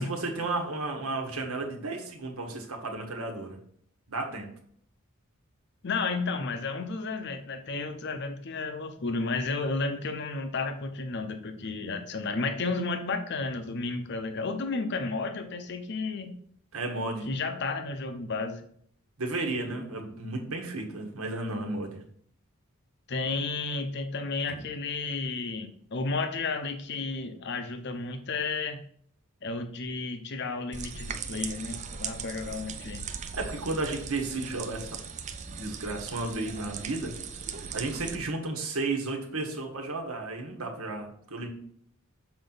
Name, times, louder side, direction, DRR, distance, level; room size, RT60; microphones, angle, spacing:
voice 1, 0.0-3.6 4.1-4.5 16.7-17.3 19.2-22.0 24.5-24.6 33.3-35.0 35.5-37.1 37.7-41.5, right 2 dB, 80° right, 2 dB, 1.3 m, -33 dB
voice 2, 5.8-16.3 17.3-18.6 23.1-28.8 29.4-33.0, left 3 dB, 55° left, 7 dB, 0.7 m, -32 dB
sound 1, 30.7-38.2, right 6 dB, 35° right, 0.5 m, -39 dB
7.0 x 4.4 x 4.0 m, 0.62 s
head